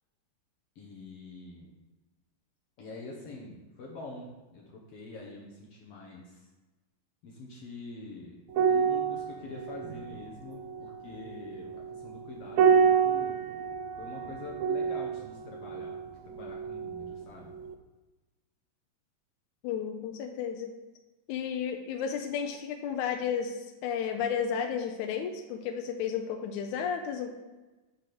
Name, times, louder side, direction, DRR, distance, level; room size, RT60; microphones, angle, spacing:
voice 1, 0.7-1.7 2.8-6.4 7.2-8.4 8.7-13.4 14.0-16.0 16.2-17.5, left 3 dB, 65° left, -2 dB, 1.7 m, -45 dB
sound 1, 8.5-17.2 17.5-17.7, right 6 dB, 80° right, 1.7 m, -29 dB
voice 2, 19.6-20.7 21.3-27.3, left 7 dB, 85° left, 4 dB, 2.0 m, -32 dB
8.1 x 3.5 x 5.9 m, 1.2 s
omnidirectional pair, 3.4 m